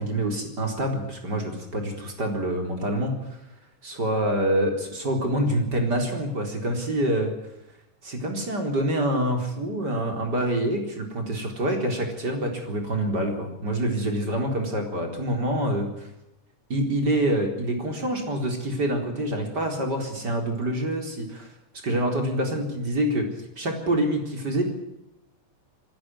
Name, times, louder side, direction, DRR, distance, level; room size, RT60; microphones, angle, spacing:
voice 1, 0.0-3.1 3.8-7.3 8.0-16.1 16.7-21.5 21.8-23.3 23.6-24.6, right 1 dB, 30° right, 3 dB, 4.6 m, -26 dB
26.0 x 13.0 x 9.7 m, 0.91 s
omnidirectional pair, 3.7 m